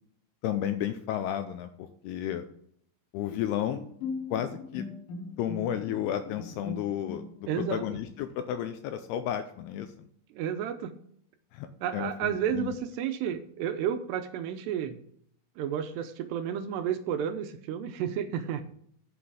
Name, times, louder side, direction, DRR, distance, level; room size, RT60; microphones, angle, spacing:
voice 1, 0.4-1.7 2.0-2.4 3.1-3.9 4.3-4.8 5.4-9.9 11.5-11.7 11.9-12.7, left 10 dB, 85° left, 9 dB, 2.4 m, -32 dB
Bowed string instrument, 3.3-8.1, left 3 dB, 60° left, 2.6 m, -40 dB
voice 2, 7.5-8.0 10.3-11.0 11.8-15.0 15.6-18.6, right 9 dB, 80° right, 8 dB, 2.7 m, -31 dB
11.5 x 6.1 x 4.9 m, 0.66 s
omnidirectional pair, 5.2 m